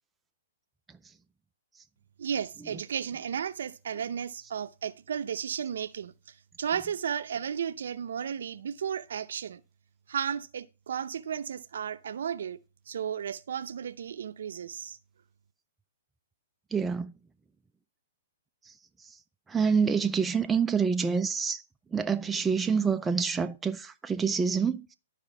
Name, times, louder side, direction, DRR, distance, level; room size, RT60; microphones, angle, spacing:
voice 1, 2.2-9.6 10.1-12.6 12.9-15.0, right 8 dB, 75° right, 0.6 m, -34 dB
voice 2, 16.7-17.1 19.5-21.6 21.9-24.9, right 5 dB, 10° right, 0.4 m, -27 dB
12.5 x 5.0 x 3.4 m
hypercardioid pair, 140°, 0 cm